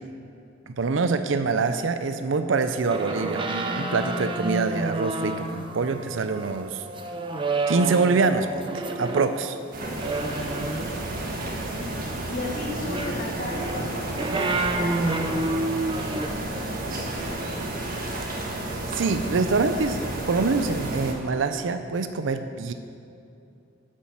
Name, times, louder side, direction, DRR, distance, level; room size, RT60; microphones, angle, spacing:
voice 1, 0.7-6.8 7.7-9.6 18.6-20.0 20.3-22.7, right 4 dB, 70° right, 9 dB, 0.5 m, -25 dB
sound 1, 2.8-9.3 10.0-11.2 12.7-16.3, right 2 dB, 25° right, 0.7 m, -29 dB
sound 2, 9.7-21.1, right 1 dB, 45° right, 1.5 m, -32 dB
voice 2, 11.1-17.7, left 2 dB, 45° left, -5 dB, 2.3 m, -37 dB
9.0 x 7.3 x 7.4 m, 2.6 s
head